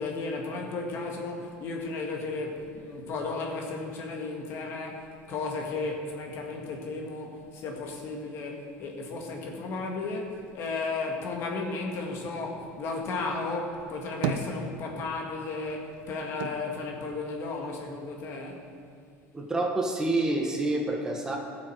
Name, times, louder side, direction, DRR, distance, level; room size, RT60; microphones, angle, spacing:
voice 1, 0.0-18.6, left 3 dB, 55° left, 1 dB, 1.8 m, -34 dB
sound 1, 13.8-15.3 15.6-18.0 18.3-19.2, right 5 dB, 85° right, 0.7 m, -36 dB
voice 2, 19.3-21.4, right 2 dB, 10° right, 1 dB, 1.1 m, -27 dB
15.5 x 6.9 x 4.7 m, 2.3 s
cardioid pair, 135°, 5 cm